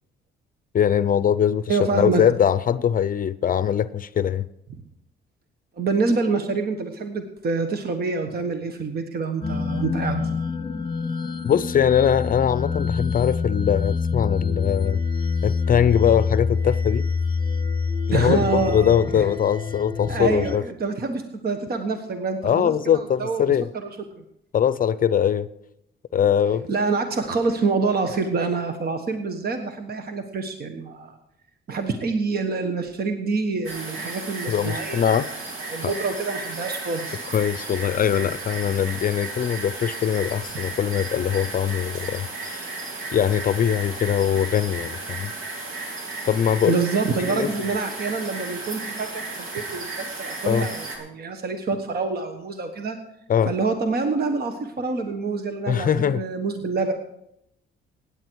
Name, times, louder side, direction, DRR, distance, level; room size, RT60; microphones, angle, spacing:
voice 1, 0.7-4.5 11.4-15.0 15.4-17.1 18.1-20.6 22.4-23.7 24.5-25.5 26.1-26.7 34.5-35.3 35.8-35.9 37.3-42.7 43.1-45.3 46.3-46.8 47.3-47.5 50.4-50.7 53.3-53.5 55.7-56.2, left 9 dB, 45° left, 0.5 m, -22 dB
voice 2, 1.7-2.2 5.8-10.3 18.1-19.3 20.1-23.6 23.8-23.9 26.7-31.2 31.7-35.1 35.7-37.2 46.6-53.0 53.5-56.9, right 4 dB, 50° right, 1.3 m, -26 dB
sound 1, 9.4-20.6, left 5 dB, 25° left, 1.1 m, -26 dB
sound 2, 33.6-51.0, right 3 dB, 80° right, 3.1 m, -34 dB
16.5 x 9.9 x 4.6 m
cardioid pair, 90°, 20 cm